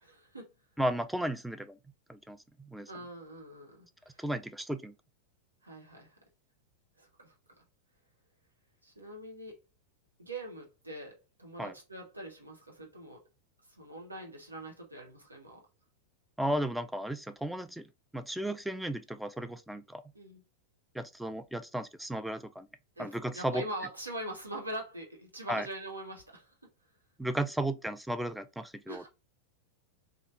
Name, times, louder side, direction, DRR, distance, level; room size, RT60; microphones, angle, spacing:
voice 1, 0.0-0.5 2.9-4.2 5.6-6.1 7.0-7.3 8.8-9.6 10.2-13.2 13.7-15.6 20.1-20.4 23.0-26.5 28.9-29.1, right 1 dB, 80° right, 1.1 m, -43 dB
voice 2, 0.8-1.8 2.1-2.9 4.2-4.9 11.6-11.7 16.4-17.9 18.1-20.0 20.9-22.7 23.0-23.6 25.5-25.7 27.2-29.0, right 1 dB, 5° right, 0.3 m, -34 dB
3.2 x 2.4 x 2.6 m
figure-of-eight pair, 90°, 0 cm